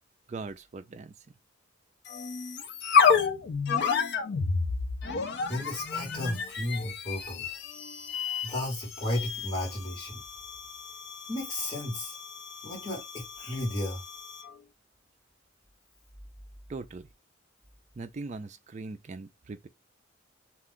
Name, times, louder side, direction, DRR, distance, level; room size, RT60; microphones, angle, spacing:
voice 1, 0.3-1.1 16.7-17.1 18.0-19.7, right 3 dB, 35° right, 0.3 m, -40 dB
sound 1, 2.0-14.5, left 6 dB, 55° left, 0.5 m, -31 dB
voice 2, 5.4-7.5 8.4-10.1 11.3-12.2 12.6-14.0, left 1 dB, 20° left, 1.2 m, -33 dB
2.4 x 2.3 x 3.5 m
head